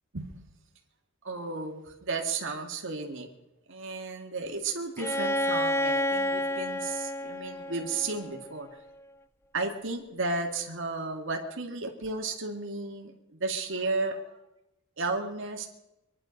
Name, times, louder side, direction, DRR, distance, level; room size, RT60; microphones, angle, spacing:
voice 1, 1.2-3.3 3.7-8.7 9.5-14.4 15.0-15.7, right 3 dB, 60° right, 2 dB, 2.1 m, -33 dB
Bowed string instrument, 5.0-8.7, left 1 dB, 10° left, 0.4 m, -30 dB
24.0 x 11.0 x 5.2 m, 0.93 s
head